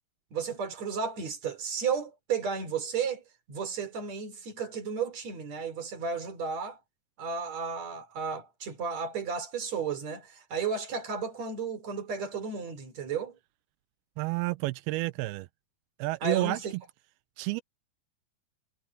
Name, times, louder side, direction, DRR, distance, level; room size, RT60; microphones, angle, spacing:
voice 1, 0.3-3.2 3.5-6.8 7.2-13.4 16.2-16.7, right 5 dB, 45° right, 4.7 m, -33 dB
voice 2, 14.2-15.5 16.0-16.6 17.4-17.6, right 21 dB, 90° right, 2.5 m, -30 dB
omnidirectional pair, 4.3 m